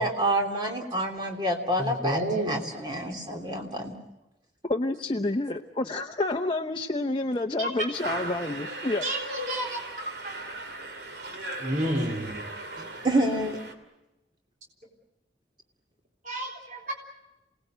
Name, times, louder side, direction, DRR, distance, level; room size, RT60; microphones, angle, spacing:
voice 1, 0.0-2.2 2.5-3.9 13.0-13.6, right 1 dB, 25° right, 3 dB, 3.1 m, -27 dB
voice 2, 1.8-2.6 3.1-3.2 7.6-7.7 9.0-9.8 10.2-10.4 11.6-12.3 16.2-16.9, right 1 dB, 45° right, 0 dB, 3.8 m, -30 dB
voice 3, 4.6-9.0, left 2 dB, 30° left, 4 dB, 0.8 m, -29 dB
sound 1, 7.9-13.7, right 2 dB, 70° right, 2.8 m, -38 dB
28.0 x 19.0 x 8.0 m, 0.95 s
head